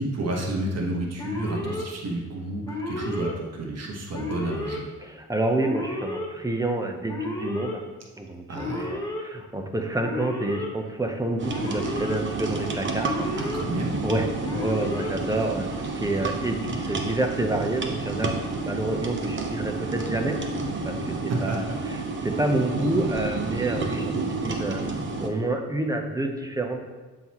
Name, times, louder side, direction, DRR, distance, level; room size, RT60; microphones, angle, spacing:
voice 1, 0.0-4.8 8.5-8.9 13.4-14.0 21.3-21.6, right 1 dB, 55° right, 0 dB, 1.4 m, -30 dB
Alarm, 1.2-1.8 2.7-3.3 4.1-4.8 5.6-6.3 7.1-7.7 8.5-9.2 10.0-10.7 11.5-12.2 13.0-13.6 14.4-15.1, left 1 dB, 10° left, 1.4 m, -32 dB
voice 2, 5.0-7.8 8.2-13.3 14.0-14.3 14.5-20.4 20.8-24.8 25.2-26.8, right 2 dB, 10° right, 4 dB, 0.8 m, -28 dB
sound 1, 11.4-25.3, right 3 dB, 40° right, 0.9 m, -30 dB
11.5 x 4.1 x 3.0 m, 1.3 s
cardioid pair, 90°, 30 cm